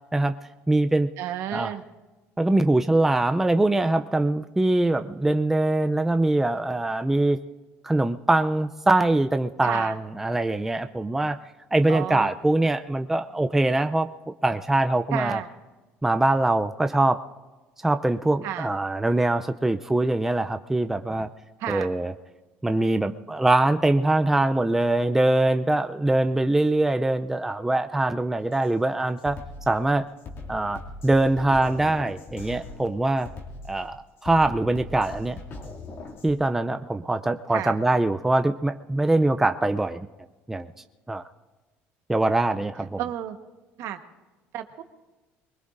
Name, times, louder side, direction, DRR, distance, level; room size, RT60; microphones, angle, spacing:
voice 1, 0.7-1.1 1.5-1.7 2.4-7.4 7.8-11.4 11.7-14.1 14.4-15.4 16.0-17.2 17.8-21.3 21.7-22.1 22.6-29.4 29.7-30.0 30.5-33.3 33.6-35.4 36.2-40.1 40.5-40.7 41.1-41.2 42.1-43.0, right 2 dB, 5° right, 8 dB, 0.4 m, -23 dB
voice 2, 1.2-1.8 9.6-10.0 11.9-12.3 15.1-15.5 18.4-18.7 21.6-21.9 37.5-37.8 43.0-43.4 43.8-44.0 44.5-44.8, right 11 dB, 70° right, 8 dB, 1.2 m, -31 dB
Drum kit, 28.5-28.7 29.2-36.4, left 3 dB, 50° left, 2.4 m, -40 dB
23.5 x 21.0 x 2.6 m, 1.2 s
cardioid pair, 130°, 5 cm